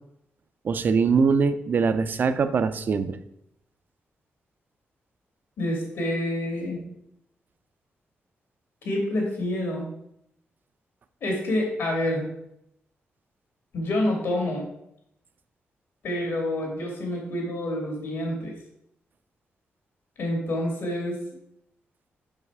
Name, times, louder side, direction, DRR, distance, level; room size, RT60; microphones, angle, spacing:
voice 1, 0.6-3.2, right 5 dB, 50° right, 12 dB, 0.5 m, -22 dB
voice 2, 5.6-6.8 8.8-9.9 11.2-12.3 13.7-14.7 16.0-18.5 20.2-21.2, left 1 dB, 70° left, 0 dB, 2.4 m, -27 dB
5.7 x 5.5 x 4.7 m, 0.78 s
wide cardioid pair, 145°, 4 cm